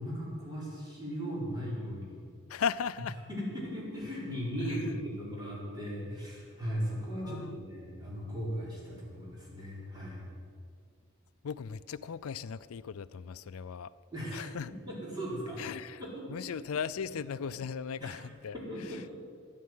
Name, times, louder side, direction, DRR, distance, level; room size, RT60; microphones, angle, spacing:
voice 1, 0.0-2.2 3.3-10.2 14.1-15.6 16.0-16.4 18.0-18.1 18.7-19.0, equal, 20° right, -6 dB, 4.8 m, -37 dB
voice 2, 2.5-3.2 4.7-4.8 7.2-7.6 11.4-13.9 14.3-14.7 15.6-16.0 16.3-19.0, left 6 dB, 80° left, 16 dB, 0.4 m, -37 dB
13.0 x 10.5 x 9.4 m, 2.2 s
head